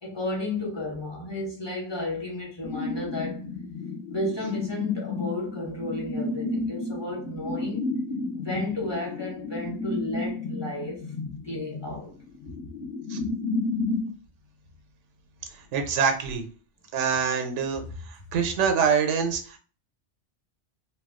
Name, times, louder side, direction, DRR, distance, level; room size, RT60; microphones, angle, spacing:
voice 1, 0.0-3.4 4.1-7.9 8.3-11.0 11.4-12.1, left 2 dB, 25° left, 0.9 m, -33 dB
sound 1, 2.6-14.1, left 3 dB, 55° left, 0.7 m, -32 dB
voice 2, 15.7-16.4 16.9-17.8 18.3-19.6, right 6 dB, 90° right, 0.9 m, -24 dB
2.3 x 2.3 x 3.6 m
omnidirectional pair, 1.2 m